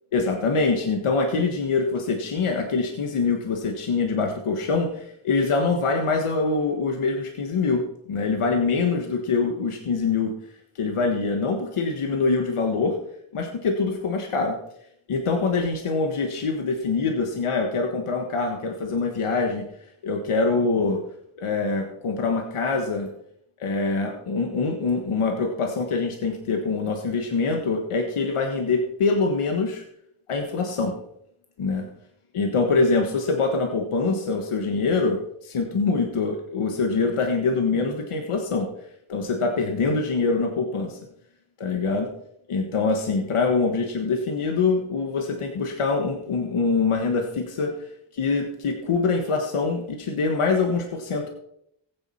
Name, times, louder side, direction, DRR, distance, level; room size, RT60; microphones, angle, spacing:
voice 1, 0.1-7.8 8.1-10.3 10.7-13.0 13.3-14.5 15.1-19.6 20.0-21.0 21.4-23.1 23.6-29.8 30.3-30.9 31.6-31.9 32.3-38.7 39.1-41.0 41.6-42.1 42.5-47.9 48.1-51.3, left 4 dB, 85° left, 3 dB, 1.6 m, -24 dB
15.5 x 9.6 x 5.7 m, 0.75 s
cardioid pair, 40°, 49 cm